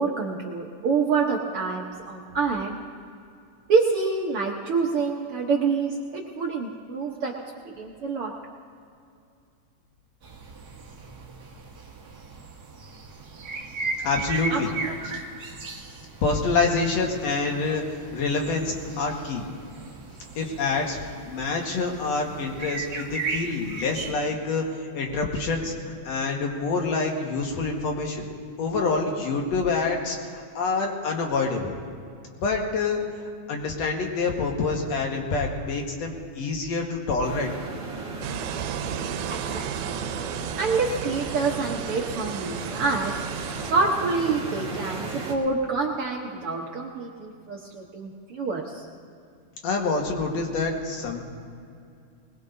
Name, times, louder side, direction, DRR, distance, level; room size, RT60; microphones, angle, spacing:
voice 1, 0.0-2.8 3.7-7.3 7.6-8.3 14.5-14.9 39.3-40.0 40.6-43.1 43.7-48.9, right 4 dB, 65° right, -1 dB, 1.5 m, -27 dB
sound 1, 10.2-24.1, right 3 dB, 45° right, 1.4 m, -37 dB
voice 2, 14.0-14.7 15.0-15.2 16.2-17.8 18.1-19.5 20.4-25.7 26.0-28.3 28.6-31.7 32.4-33.0 33.5-37.5 49.6-51.3, left 4 dB, 60° left, 1 dB, 2.5 m, -26 dB
sound 2, 37.2-45.3, right 3 dB, 30° right, 1.8 m, -35 dB
sound 3, 38.2-43.7, right 10 dB, 90° right, 2.2 m, -34 dB
21.5 x 20.5 x 2.7 m, 2.4 s
omnidirectional pair, 3.6 m